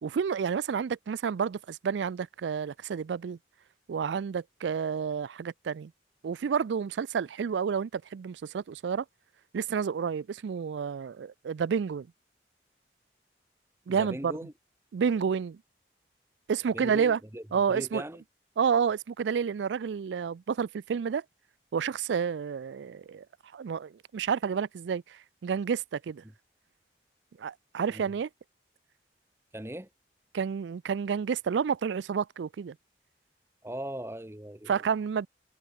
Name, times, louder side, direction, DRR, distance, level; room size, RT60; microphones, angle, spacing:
voice 1, 0.0-3.4 3.9-5.9 6.2-9.0 9.5-12.1 13.9-14.3 14.9-15.6 16.5-17.2 17.5-18.0 18.6-21.2 21.7-23.2 23.5-26.2 27.4-28.3 30.3-32.7 34.7-35.3, right 6 dB, 90° right, 0.4 m, -30 dB
voice 2, 13.9-14.5 16.7-17.4 17.7-18.2 27.9-28.1 29.5-29.9 33.6-34.7, right 1 dB, 15° right, 1.2 m, -39 dB
head